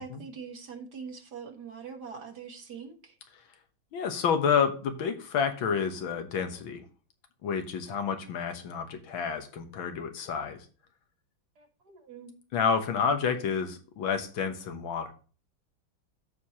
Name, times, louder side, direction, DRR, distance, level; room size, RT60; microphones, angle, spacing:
voice 1, 0.0-3.2 11.6-12.3, right 6 dB, 60° right, 4 dB, 1.9 m, -43 dB
voice 2, 3.9-6.8 7.4-10.6 12.5-15.1, left 6 dB, 85° left, 7 dB, 2.0 m, -29 dB
14.0 x 4.8 x 2.9 m, 0.37 s
omnidirectional pair, 2.1 m